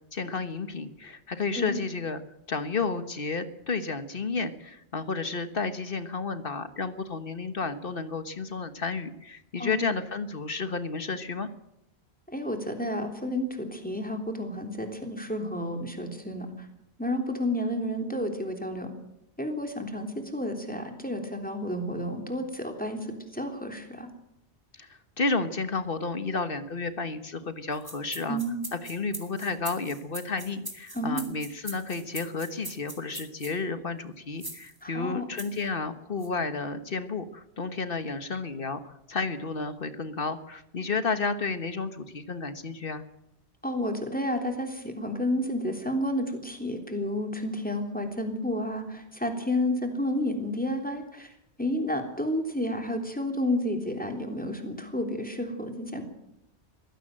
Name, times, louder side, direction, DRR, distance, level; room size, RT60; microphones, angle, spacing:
voice 1, 0.1-2.2 2.5-11.5 24.8-28.4 28.7-43.0, left 4 dB, 55° left, 11 dB, 1.5 m, -32 dB
voice 2, 9.6-9.9 12.3-16.7 17.0-18.9 19.4-24.1 28.3-28.6 30.9-31.3 34.8-35.2 43.6-51.3 51.6-56.0, left 1 dB, 10° left, 4 dB, 3.4 m, -31 dB
sound 1, 27.7-33.5 34.4-34.7 35.4-35.6 36.2-36.3, right 1 dB, 20° right, 3.0 m, -40 dB
22.5 x 16.5 x 7.7 m, 0.81 s
omnidirectional pair, 1.1 m